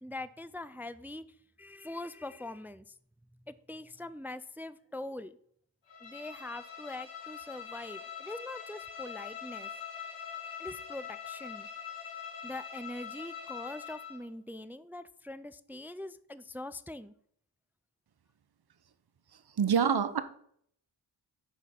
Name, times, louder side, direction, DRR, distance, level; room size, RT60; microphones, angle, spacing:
voice 1, 0.0-1.2 1.6-2.9 3.5-5.4 6.0-9.7 10.6-11.7 12.4-17.1, left 2 dB, 5° right, 14 dB, 0.3 m, -43 dB
Bowed string instrument, 5.9-14.3, left 7 dB, 65° left, 2.6 m, -43 dB
voice 2, 19.6-20.2, right 7 dB, 55° right, 11 dB, 0.9 m, -25 dB
7.8 x 5.0 x 5.8 m, 0.65 s
cardioid pair, 55°, 47 cm